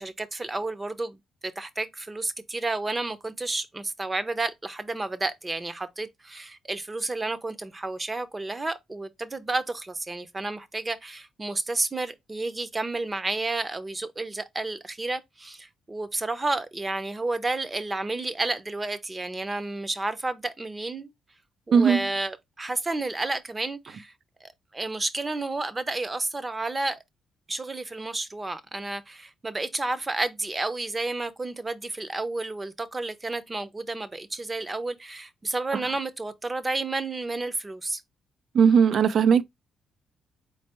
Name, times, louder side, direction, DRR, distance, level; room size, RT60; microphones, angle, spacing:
voice 1, 0.0-21.1 21.7-24.1 24.4-27.0 27.5-38.0, right 2 dB, 20° right, 0.7 m, -31 dB
voice 2, 21.7-22.0 38.5-39.4, right 6 dB, 55° right, 0.4 m, -18 dB
4.2 x 3.2 x 2.9 m
cardioid pair, 90°, 0 cm